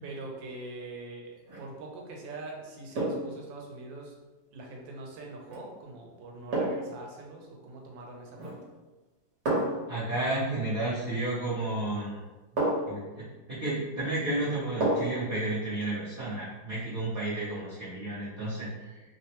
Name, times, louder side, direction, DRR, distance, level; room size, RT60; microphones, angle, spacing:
voice 1, 0.0-4.1 4.5-8.6, right 2 dB, 80° right, 0 dB, 1.3 m, -43 dB
sound 1, 1.4-1.7 2.9-3.4 5.5-5.7 6.5-7.0 8.3-8.7 9.4-9.9 11.6-11.7 12.6-13.0 14.8-15.2 15.6-15.7, right 1 dB, 65° right, 1.4 m, -30 dB
voice 2, 9.9-12.2 12.9-19.0, right 2 dB, 45° right, -11 dB, 0.7 m, -32 dB
3.3 x 2.1 x 2.8 m, 1.2 s
omnidirectional pair, 2.0 m